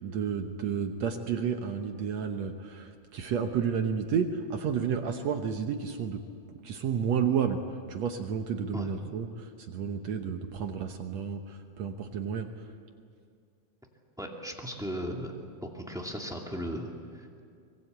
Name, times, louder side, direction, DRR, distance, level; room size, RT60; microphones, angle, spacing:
voice 1, 0.0-6.2 6.6-7.6 7.9-12.7, right 7 dB, 70° right, 5 dB, 1.6 m, -31 dB
voice 2, 14.2-15.3 15.6-17.4, equal, ahead, 0 dB, 1.0 m, -37 dB
24.5 x 22.0 x 8.1 m, 2.2 s
omnidirectional pair, 4.5 m